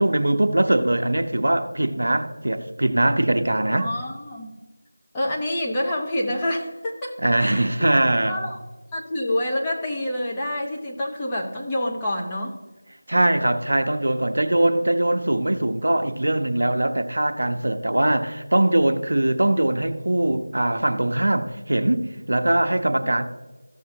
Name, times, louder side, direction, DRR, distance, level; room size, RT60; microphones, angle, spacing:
voice 1, 0.0-3.9 7.2-8.4 13.1-23.2, right 1 dB, 70° right, 0.8 m, -21 dB
voice 2, 3.7-4.5 5.1-7.7 8.3-8.6 8.9-12.6, left 1 dB, 15° left, 0.9 m, -27 dB
14.5 x 6.6 x 2.9 m
figure-of-eight pair, 170°, 0 cm